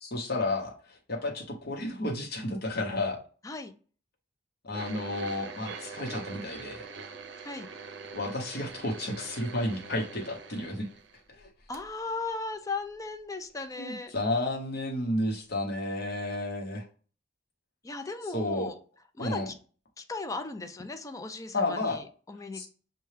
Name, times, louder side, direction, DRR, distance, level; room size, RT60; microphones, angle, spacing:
voice 1, 0.0-3.2 4.6-6.8 8.1-10.9 11.3-11.5 13.8-16.8 18.3-18.7 19.2-19.5 21.5-22.0 22.5-22.7, left 1 dB, 55° left, 2 dB, 0.9 m, -32 dB
sound 1, 4.7-11.4 11.7-11.9 12.6-12.7, right 4 dB, 65° right, 0.6 m, -43 dB
voice 2, 11.7-14.1 17.8-18.8 19.1-19.5 20.0-22.7, left 3 dB, 20° left, 7 dB, 0.4 m, -37 dB
6.6 x 2.3 x 3.2 m, 0.41 s
head